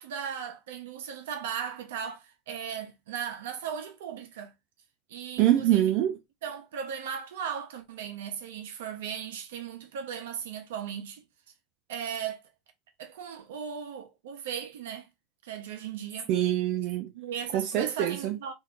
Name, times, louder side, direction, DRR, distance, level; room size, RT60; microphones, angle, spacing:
voice 1, 0.0-4.5 5.1-5.9 6.4-11.2 11.9-12.4 13.0-15.1 15.4-16.3 17.1-18.5, right 8 dB, 80° right, 0.8 m, -37 dB
voice 2, 5.4-6.2 16.3-17.1 17.5-18.4, right 12 dB, 60° right, 0.4 m, -25 dB
2.7 x 2.6 x 3.4 m
hypercardioid pair, 85°, 0 cm